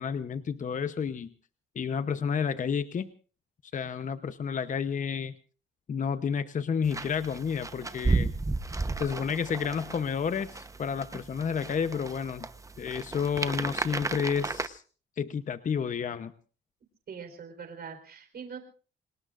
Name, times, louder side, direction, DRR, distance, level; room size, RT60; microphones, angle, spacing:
voice 1, 0.0-1.3 1.7-3.1 3.7-5.3 5.9-8.3 9.0-12.5 12.8-14.8 15.2-16.3, left 6 dB, 40° left, 12 dB, 0.9 m, -30 dB
sound 1, 6.8-14.7, right 3 dB, 15° right, 1.0 m, -33 dB
voice 2, 17.1-18.6, right 6 dB, 50° right, 6 dB, 4.3 m, -42 dB
28.5 x 19.5 x 2.5 m, 0.38 s
cardioid pair, 90°, 20 cm